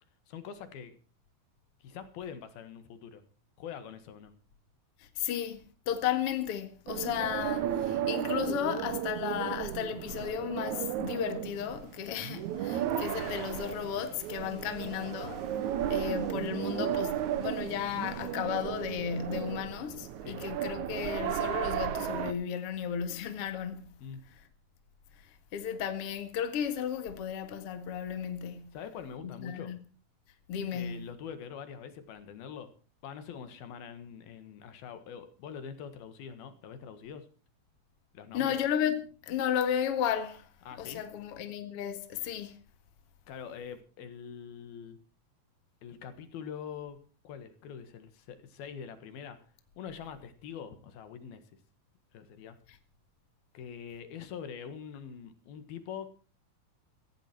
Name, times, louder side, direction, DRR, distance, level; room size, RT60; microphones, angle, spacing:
voice 1, 0.3-0.9 1.8-3.2 3.6-4.3 20.2-20.4 24.0-24.2 28.7-29.7 30.7-32.7 33.0-37.3 38.1-38.6 40.7-41.0 43.3-45.0 45.8-49.4 49.8-51.4 52.1-52.6 53.5-56.1, left 7 dB, 75° left, 3.5 m, -44 dB
voice 2, 5.0-5.6 5.9-15.5 15.9-24.0 25.5-28.8 29.2-29.8 30.5-31.1 38.3-40.5 40.8-42.6, left 9 dB, 45° left, 2.3 m, -34 dB
sound 1, 6.9-22.3, right 10 dB, 65° right, 2.0 m, -34 dB
sound 2, 11.5-18.3, right 1 dB, 15° right, 8.0 m, -60 dB
17.0 x 16.0 x 4.5 m
omnidirectional pair, 4.4 m